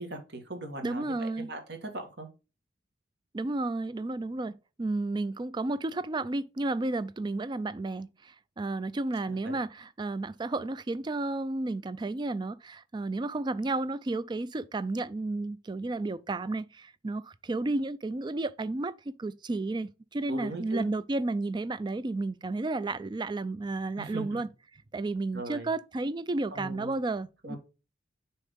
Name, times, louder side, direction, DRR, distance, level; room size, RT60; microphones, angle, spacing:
voice 1, 0.0-2.3 9.2-9.6 20.3-20.9 24.0-24.4 25.3-25.7 26.5-26.9 27.4-27.6, right 1 dB, 60° right, 1.7 m, -39 dB
voice 2, 0.8-1.5 3.3-27.6, right 2 dB, 25° right, 0.3 m, -32 dB
6.3 x 4.3 x 3.7 m
head